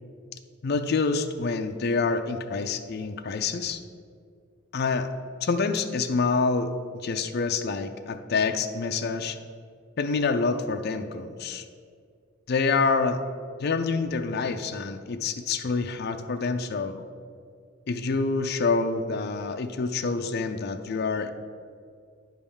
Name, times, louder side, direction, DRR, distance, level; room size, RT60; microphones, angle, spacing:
voice 1, 0.6-3.8 4.7-5.1 5.4-6.7 7.0-9.4 10.0-11.6 12.5-13.2 13.6-17.0 17.9-21.3, left 4 dB, 50° left, 6 dB, 0.5 m, -27 dB
9.6 x 3.5 x 7.1 m, 2.2 s
head